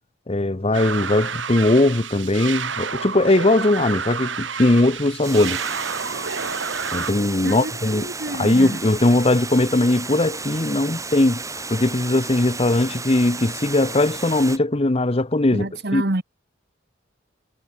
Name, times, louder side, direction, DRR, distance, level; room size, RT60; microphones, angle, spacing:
voice 1, 0.3-5.6 6.9-16.0, left 2 dB, 30° left, 0.9 m, -20 dB
sound 1, 0.7-7.1, right 6 dB, 75° right, 2.1 m, -29 dB
Water, 5.2-14.6, right 4 dB, 15° right, 3.1 m, -33 dB
voice 2, 7.4-8.8 15.5-16.2, right 2 dB, 55° right, 1.5 m, -28 dB
head